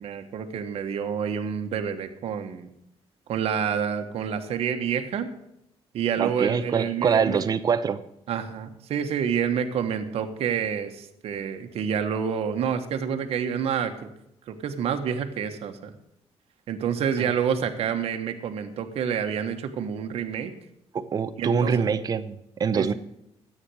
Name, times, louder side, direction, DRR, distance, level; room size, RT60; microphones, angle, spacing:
voice 1, 0.0-2.7 3.3-5.3 5.9-7.4 8.3-13.9 14.5-15.9 16.7-20.5 21.4-21.9 22.7-22.9, right 7 dB, 60° right, 5 dB, 1.4 m, -28 dB
voice 2, 6.2-8.0 17.2-17.3 20.9-22.9, right 6 dB, 35° right, 12 dB, 0.7 m, -25 dB
13.5 x 8.9 x 6.3 m, 0.80 s
cardioid pair, 160°, 11 cm